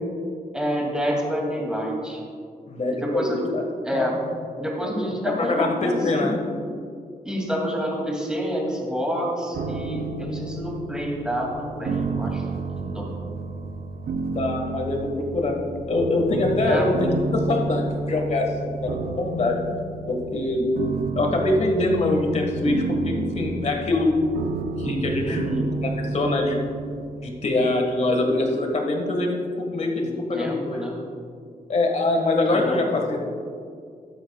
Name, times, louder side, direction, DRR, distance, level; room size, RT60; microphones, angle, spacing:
voice 1, 0.5-2.2 2.9-3.4 3.8-4.2 4.6-6.3 7.2-12.4 12.8-13.1 16.7-16.9 25.2-25.7 30.0-31.0 32.5-32.8, equal, 5° right, -2 dB, 2.5 m, -28 dB
voice 2, 2.7-3.6 3.9-4.2 4.6-4.9 5.4-6.4 14.3-15.5 15.9-19.6 20.1-20.7 21.1-24.2 24.8-26.6 27.2-29.3 29.6-30.8 31.7-33.2, left 2 dB, 45° left, 2 dB, 1.6 m, -24 dB
sound 1, 9.5-28.5, right 3 dB, 75° right, 0.7 m, -31 dB
14.0 x 12.0 x 2.4 m, 2.2 s
wide cardioid pair, 135°, 15 cm